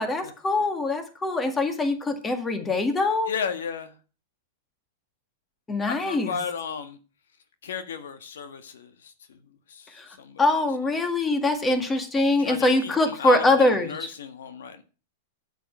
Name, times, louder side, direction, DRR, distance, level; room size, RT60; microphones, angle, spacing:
voice 1, 0.0-3.3 5.7-6.4 9.9-10.1 10.4-14.1, left 2 dB, 15° left, 8 dB, 1.9 m, -23 dB
voice 2, 3.3-3.9 5.9-7.0 7.6-9.4 9.7-9.9 10.2-10.4 12.4-14.8, left 6 dB, 85° left, 10 dB, 1.6 m, -34 dB
9.0 x 8.1 x 6.1 m, 0.35 s
hypercardioid pair, 140°, 0 cm